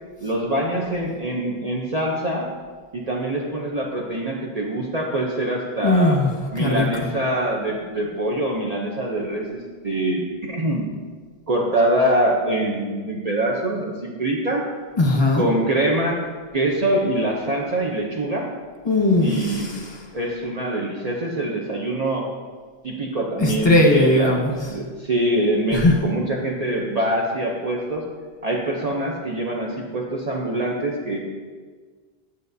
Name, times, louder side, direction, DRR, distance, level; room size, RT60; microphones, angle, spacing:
voice 1, 0.2-2.5 2.9-6.2 6.5-10.9 11.5-14.6 15.3-16.2 16.5-18.5 19.2-19.7 20.1-22.3 22.8-28.0 28.4-31.2, right 1 dB, 45° right, -2 dB, 0.7 m, -24 dB
voice 2, 5.8-6.3 6.6-7.1 15.0-15.5 18.8-20.1 23.4-24.7 25.7-26.0, left 2 dB, 25° left, 1 dB, 1.1 m, -19 dB
9.9 x 6.7 x 2.7 m, 1.5 s
omnidirectional pair, 1.1 m